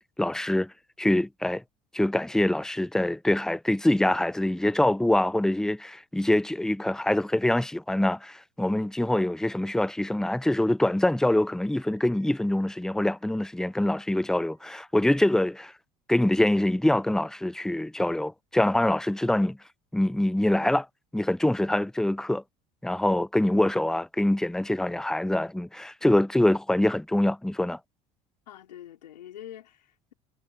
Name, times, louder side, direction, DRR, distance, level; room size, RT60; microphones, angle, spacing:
voice 1, 0.2-0.7 1.0-1.6 1.9-15.7 16.1-19.6 19.9-20.9 21.1-22.4 22.8-27.8, left 1 dB, 5° left, 0.5 m, -24 dB
Wind instrument woodwind instrument, 11.2-15.7, right 6 dB, 40° right, 4.7 m, -69 dB
voice 2, 28.5-30.1, left 11 dB, 85° left, 3.5 m, -45 dB
hypercardioid pair, 70°, 21 cm